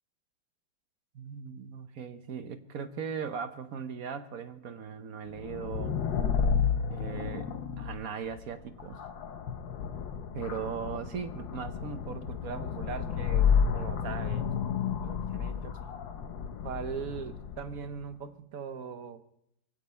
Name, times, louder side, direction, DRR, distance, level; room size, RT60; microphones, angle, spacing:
voice 1, 1.1-6.0 6.9-9.0 10.3-14.5 15.0-15.8 16.6-19.4, right 6 dB, 55° right, 10 dB, 1.1 m, -39 dB
sound 1, 5.3-17.9, left 7 dB, 75° left, 1.7 m, -31 dB
23.5 x 16.0 x 3.3 m, 0.77 s
omnidirectional pair, 2.1 m